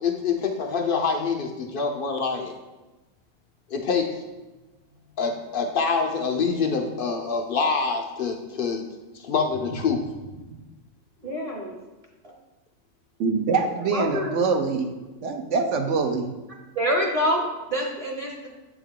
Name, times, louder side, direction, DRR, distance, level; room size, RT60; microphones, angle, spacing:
voice 1, 0.0-2.6 3.7-4.1 5.2-8.9 9.1-10.0, left 5 dB, 60° left, 3 dB, 0.6 m, -25 dB
voice 2, 11.2-11.8 12.2-12.3 13.9-14.3 16.7-18.5, equal, 30° right, -1 dB, 0.8 m, -26 dB
voice 3, 13.2-14.9 15.2-16.3, right 4 dB, 65° right, 4 dB, 0.9 m, -24 dB
8.1 x 3.5 x 3.6 m, 1.1 s
omnidirectional pair, 1.4 m